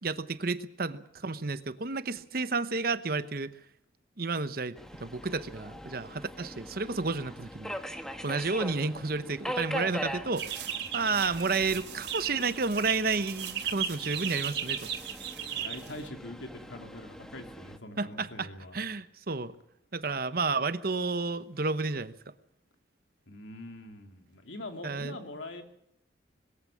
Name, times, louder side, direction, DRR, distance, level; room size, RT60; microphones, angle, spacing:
voice 1, 0.0-3.5 4.2-7.7 8.2-10.5 10.9-14.9 18.0-18.5 18.7-19.5 19.9-22.1 24.8-25.1, right 4 dB, 50° right, 13 dB, 1.0 m, -31 dB
Subway metro underground, 4.8-17.8, equal, 5° left, 1.3 m, -42 dB
sound 1, 10.4-16.1, right 8 dB, 70° right, 3.1 m, -36 dB
voice 2, 15.4-18.8 23.3-25.6, left 1 dB, 90° left, 5 dB, 2.8 m, -43 dB
21.0 x 14.5 x 8.5 m, 0.75 s
head